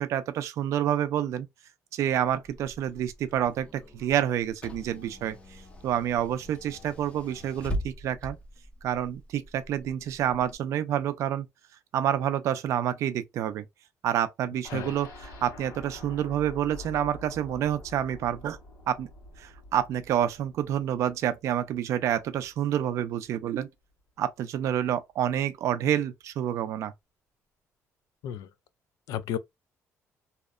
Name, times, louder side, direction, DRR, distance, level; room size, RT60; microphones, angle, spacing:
voice 1, 0.0-1.5 1.9-5.4 5.8-8.4 8.8-11.5 11.9-13.6 14.0-18.6 18.9-19.1 19.4-23.7 24.2-26.9, right 10 dB, 55° right, 0.4 m, -28 dB
Car / Engine, 2.2-10.5, equal, 20° left, 0.4 m, -41 dB
sound 1, 14.6-22.5 22.9-23.0 23.3-23.4, left 1 dB, 70° left, 1.4 m, -47 dB
voice 2, 29.1-29.4, left 10 dB, 85° left, 0.3 m, -32 dB
2.8 x 2.1 x 2.3 m
cardioid pair, 170°, 6 cm